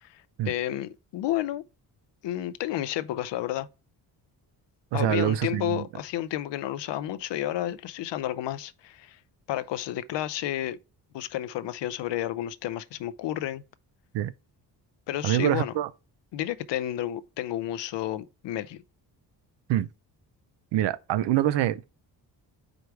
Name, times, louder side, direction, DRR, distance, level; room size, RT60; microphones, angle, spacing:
voice 1, 0.0-1.6 2.2-3.7 4.9-9.2 9.5-10.8 11.1-13.6 15.1-15.7 16.3-18.8, left 13 dB, 80° left, 0.6 m, -31 dB
voice 2, 4.9-5.8 14.1-14.3 15.2-15.9 19.7-19.9 20.7-21.8, right 13 dB, 80° right, 0.6 m, -25 dB
5.0 x 4.7 x 4.7 m
cardioid pair, 155°, 42 cm